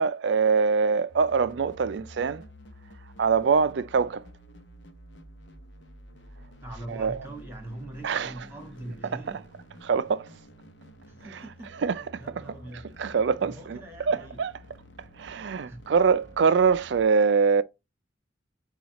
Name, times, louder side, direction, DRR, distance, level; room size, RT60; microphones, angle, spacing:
voice 1, 0.0-2.4 3.2-4.3 6.9-7.2 8.0-8.3 9.8-10.3 11.8-12.2 13.0-13.8 14.1-14.5 15.2-17.6, right 5 dB, 65° right, 0.4 m, -23 dB
sound 1, 1.1-17.1, equal, 65° left, 0.9 m, -50 dB
voice 2, 6.6-9.4 11.1-11.7 12.2-12.9 13.4-14.4 15.7-15.9, right 1 dB, 15° right, 1.5 m, -42 dB
7.0 x 2.4 x 3.0 m
head